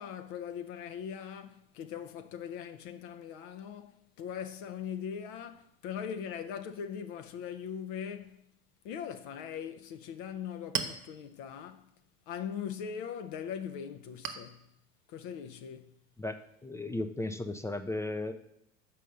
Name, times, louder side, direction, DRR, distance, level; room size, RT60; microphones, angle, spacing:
voice 1, 0.0-8.4 8.8-11.9 12.3-14.7 15.1-16.0, left 8 dB, 50° left, 0.6 m, -40 dB
Chink clink, 10.2-17.3, right 7 dB, 40° right, 1.0 m, -44 dB
voice 2, 16.6-18.3, left 2 dB, 10° left, 0.4 m, -35 dB
5.5 x 5.4 x 6.5 m
hypercardioid pair, 80°, 41 cm